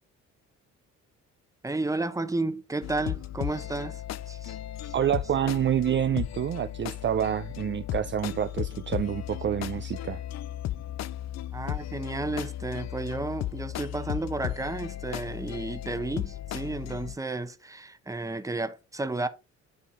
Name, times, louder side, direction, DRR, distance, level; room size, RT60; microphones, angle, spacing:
voice 1, 1.6-4.6 4.8-4.9 11.5-19.3, right 2 dB, 10° right, 0.9 m, -32 dB
sound 1, 2.8-17.2, left 13 dB, 60° left, 0.5 m, -35 dB
voice 2, 4.9-10.2, right 10 dB, 40° right, 0.5 m, -27 dB
10.0 x 3.7 x 4.2 m
cardioid pair, 90°, 30 cm